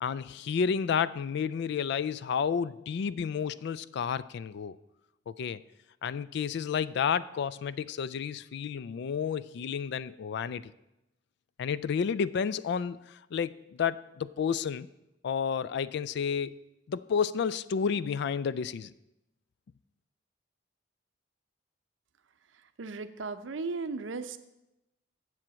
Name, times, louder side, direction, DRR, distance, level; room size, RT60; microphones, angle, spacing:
voice 1, 0.0-4.8 5.3-5.6 6.0-10.7 11.6-14.9 15.2-16.6 16.9-18.9, left 6 dB, 65° left, 18 dB, 0.3 m, -31 dB
voice 2, 22.8-24.4, right 4 dB, 85° right, 10 dB, 0.6 m, -36 dB
7.8 x 7.5 x 6.2 m, 0.92 s
head